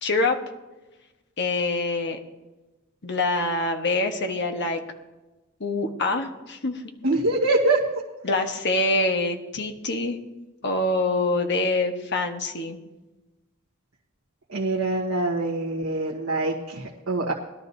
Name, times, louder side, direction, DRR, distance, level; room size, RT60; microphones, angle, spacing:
voice 1, 0.0-0.4 1.4-2.2 3.0-4.8 5.6-6.8 8.2-10.2 10.6-12.8, left 2 dB, 55° left, 5 dB, 1.3 m, -25 dB
voice 2, 7.0-7.8 14.5-17.3, right 2 dB, 70° right, -2 dB, 1.5 m, -24 dB
20.5 x 12.0 x 2.8 m, 1.1 s
head